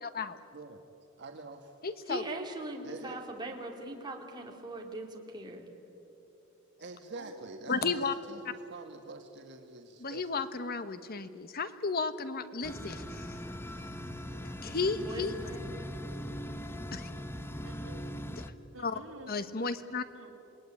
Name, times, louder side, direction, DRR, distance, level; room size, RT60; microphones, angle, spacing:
voice 1, 0.0-0.4 1.8-2.2 7.7-8.1 10.0-13.3 14.4-15.3 16.9-17.1 18.3-18.4 18.8-19.0 19.3-20.0, left 4 dB, 50° left, 11 dB, 1.1 m, -33 dB
voice 2, 1.2-1.7 2.8-3.2 6.8-10.4, right 3 dB, 55° right, 4 dB, 1.5 m, -46 dB
voice 3, 2.1-5.7 15.0-15.7, right 2 dB, 20° right, 1 dB, 3.0 m, -40 dB
voice 4, 7.1-7.6 8.5-8.7 17.6-18.2 18.7-19.3 20.1-20.3, right 1 dB, 75° right, 1 dB, 3.7 m, -49 dB
sound 1, 12.6-18.5, equal, 10° left, 0.9 m, -40 dB
27.5 x 19.5 x 9.9 m, 2.9 s
head